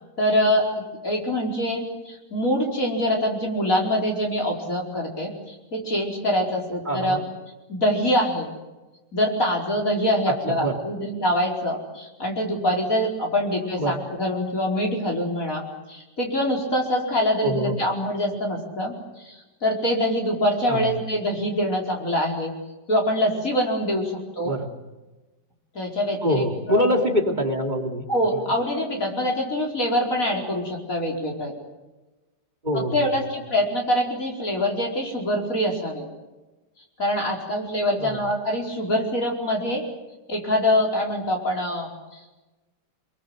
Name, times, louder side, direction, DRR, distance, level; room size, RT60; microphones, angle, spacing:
voice 1, 0.2-7.2 7.7-8.5 9.1-18.9 19.2-22.5 22.9-24.5 25.8-26.9 28.1-31.5 32.7-36.1 37.0-39.8 40.3-41.9, equal, 50° left, 0 dB, 5.2 m, -24 dB
voice 2, 6.8-7.2 10.5-10.8 13.8-14.0 17.4-17.8 20.7-20.9 24.4-24.7 26.2-28.0 28.3-28.4 32.6-33.1 38.0-38.2, equal, 25° right, 4 dB, 3.1 m, -24 dB
26.0 x 22.5 x 7.9 m, 1.1 s
omnidirectional pair, 1.8 m